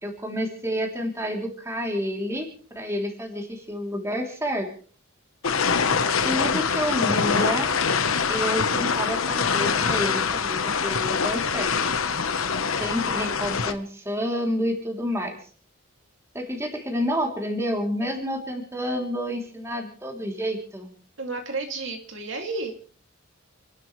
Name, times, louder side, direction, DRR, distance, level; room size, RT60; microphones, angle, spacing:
voice 1, 0.0-2.5 2.7-4.7 6.2-7.7 8.3-11.7 12.8-15.4 16.3-20.9, equal, 15° right, 1 dB, 3.2 m, -29 dB
sound 1, 5.4-13.7, left 5 dB, 85° left, 1.1 m, -24 dB
voice 2, 21.2-22.8, right 3 dB, 65° right, 3 dB, 2.6 m, -31 dB
29.5 x 12.0 x 3.3 m, 0.43 s
head